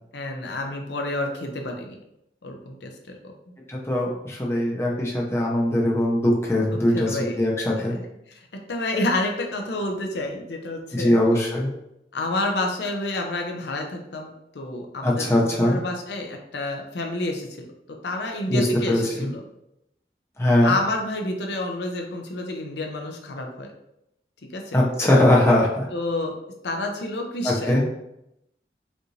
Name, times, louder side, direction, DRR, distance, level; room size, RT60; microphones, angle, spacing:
voice 1, 0.1-2.0 2.4-3.3 6.7-7.4 8.7-11.2 12.1-17.7 18.0-19.4 20.6-23.7 24.5-24.8 25.9-26.3 26.6-27.7, left 2 dB, 70° left, 3 dB, 0.6 m, -29 dB
voice 2, 3.7-8.0 10.9-11.7 15.0-15.8 18.5-19.3 20.4-20.8 24.7-25.9 27.4-27.8, left 1 dB, 15° left, -3 dB, 0.6 m, -21 dB
5.2 x 2.6 x 3.1 m, 0.84 s
head